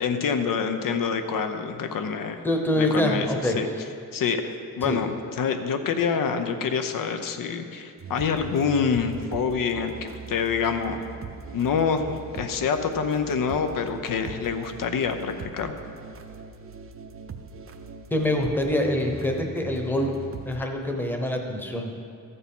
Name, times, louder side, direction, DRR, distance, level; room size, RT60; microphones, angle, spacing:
voice 1, 0.0-2.4 2.8-3.7 4.1-11.0 11.5-15.7, left 6 dB, 90° left, 7 dB, 0.8 m, -26 dB
voice 2, 2.4-3.6 4.8-5.0 18.1-20.2 20.5-21.9, left 1 dB, 5° left, 3 dB, 0.9 m, -25 dB
sound 1, 8.0-20.6, right 6 dB, 45° right, 0.6 m, -41 dB
13.5 x 6.9 x 5.5 m, 2.4 s
wide cardioid pair, 175°, 32 cm